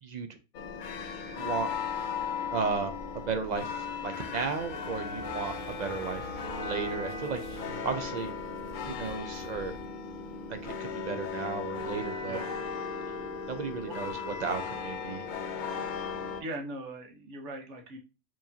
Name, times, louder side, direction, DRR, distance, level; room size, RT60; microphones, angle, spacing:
sound 1, 0.5-16.4, left 5 dB, 60° left, 0.5 m, -36 dB
voice 1, 1.3-1.7 2.5-6.3 6.6-8.3 8.8-9.7 10.5-12.4 13.5-15.2 15.6-15.8, right 5 dB, 60° right, 7 dB, 0.4 m, -34 dB
sound 2, 4.2-9.9, left 4 dB, 80° left, 1.0 m, -49 dB
voice 2, 16.4-18.0, right 1 dB, 80° right, 3 dB, 1.2 m, -40 dB
4.6 x 3.0 x 2.6 m, 0.29 s
omnidirectional pair, 1.2 m